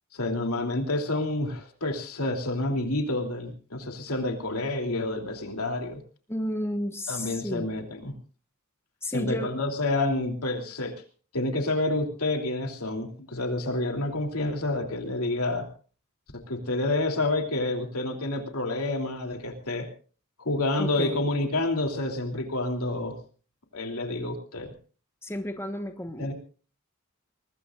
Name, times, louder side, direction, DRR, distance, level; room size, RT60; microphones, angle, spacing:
voice 1, 0.1-6.0 7.1-8.1 9.1-10.9 11.3-15.7 16.3-19.9 20.4-23.2 23.7-24.7 26.2-26.3, left 2 dB, 85° left, 4 dB, 3.1 m, -29 dB
voice 2, 6.3-7.7 9.0-9.5 20.8-21.2 25.2-26.3, left 1 dB, 10° left, 7 dB, 1.2 m, -32 dB
23.0 x 20.5 x 2.5 m, 0.38 s
head